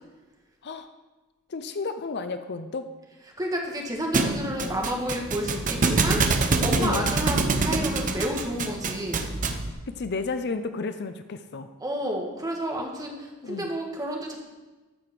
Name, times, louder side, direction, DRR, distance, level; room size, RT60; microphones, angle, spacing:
voice 1, 1.5-2.9 4.6-4.8 6.8-7.2 9.9-11.7 13.4-13.7, left 4 dB, 50° left, 10 dB, 0.5 m, -32 dB
voice 2, 3.4-6.2 6.6-9.3 11.8-14.4, equal, 15° right, 0 dB, 1.5 m, -30 dB
Thump thud, 4.1-9.7, right 3 dB, 40° right, 0.7 m, -25 dB
13.0 x 5.1 x 6.0 m, 1.2 s
head